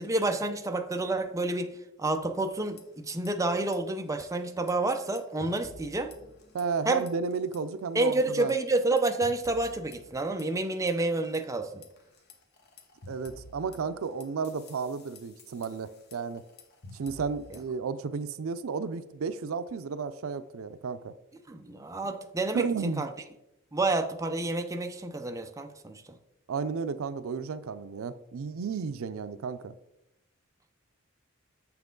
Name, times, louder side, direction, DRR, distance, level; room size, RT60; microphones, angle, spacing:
voice 1, 0.0-6.1 6.9-7.1 7.9-11.8 21.5-23.1 23.7-26.0, right 2 dB, 15° right, 6 dB, 0.5 m, -29 dB
sound 1, 2.5-3.3 3.6-3.8 4.1-6.8 7.1-7.6 8.0-11.4 11.8-17.8, left 2 dB, 55° left, 1.1 m, -51 dB
voice 2, 6.5-8.5 13.1-16.4 16.9-21.1 22.0-22.1 22.5-23.1 26.5-29.7, right 5 dB, 85° right, 12 dB, 0.4 m, -33 dB
7.2 x 5.8 x 3.8 m, 0.86 s
head